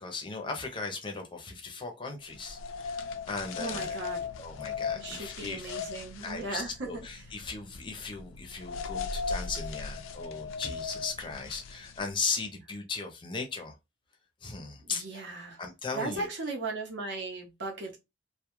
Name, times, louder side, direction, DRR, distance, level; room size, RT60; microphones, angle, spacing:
voice 1, 0.0-4.0 4.4-5.7 6.2-13.7 14.4-15.3 15.6-16.3, left 4 dB, 25° left, 0.5 m, -37 dB
sound 1, 2.3-12.3, left 5 dB, 80° left, 0.3 m, -38 dB
voice 2, 3.6-4.3 4.9-7.1 14.8-15.6 15.9-18.0, right 2 dB, 60° right, 0.8 m, -37 dB
2.2 x 2.1 x 2.9 m
head